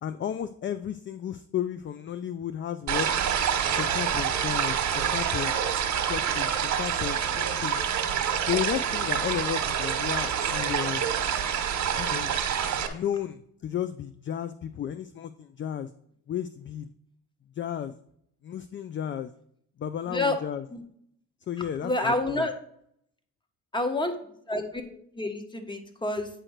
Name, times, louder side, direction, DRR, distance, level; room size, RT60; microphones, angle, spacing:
voice 1, 0.0-3.1 3.7-5.6 6.1-7.8 8.5-11.0 12.0-12.3 12.9-15.9 16.3-16.9 17.6-17.9 18.4-19.3 19.8-20.6 21.5-22.5, left 9 dB, 40° left, 12 dB, 0.4 m, -33 dB
sound 1, 2.9-12.9, right 8 dB, 65° right, 1.2 m, -27 dB
voice 2, 20.1-20.4 20.7-20.8 21.8-22.5 23.7-24.1 24.5-26.3, left 2 dB, 15° left, 6 dB, 1.3 m, -28 dB
8.9 x 3.0 x 6.4 m, 0.69 s
cardioid pair, 90°, 30 cm